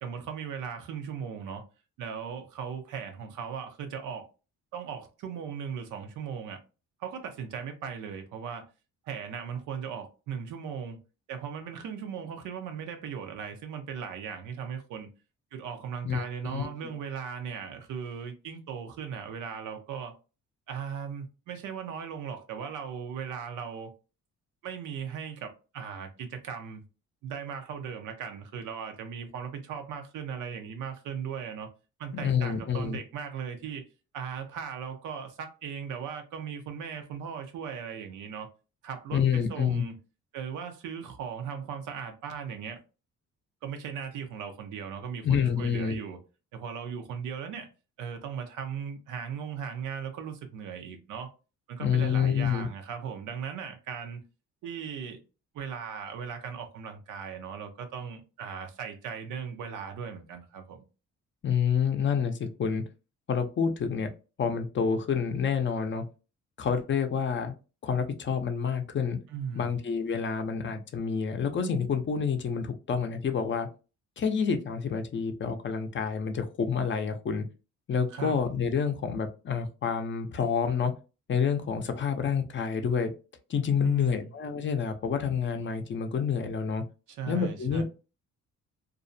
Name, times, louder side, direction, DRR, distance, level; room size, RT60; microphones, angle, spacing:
voice 1, 0.0-1.6 2.0-4.3 4.7-6.6 7.0-8.7 9.0-11.0 11.3-15.1 15.5-20.1 20.7-23.9 24.6-26.8 27.2-31.7 32.0-33.9 34.1-38.5 38.8-39.9 40.3-42.8 43.6-46.2 46.5-47.7 48.0-51.3 51.7-54.2 54.6-55.2 55.5-60.8 69.3-69.7 78.1-78.4 83.8-84.3 87.1-87.8, right 7 dB, 85° right, 0.7 m, -38 dB
voice 2, 16.0-16.7 32.1-33.0 39.1-39.8 45.2-46.0 51.8-52.7 61.4-62.8 63.3-64.1 64.4-66.0 66.6-67.5 67.8-69.2 69.5-73.7 74.2-77.4 77.9-80.9 81.3-83.1 83.5-86.8 87.3-87.8, left 6 dB, 40° left, 0.5 m, -28 dB
2.5 x 2.0 x 2.6 m
cardioid pair, 90°, 30 cm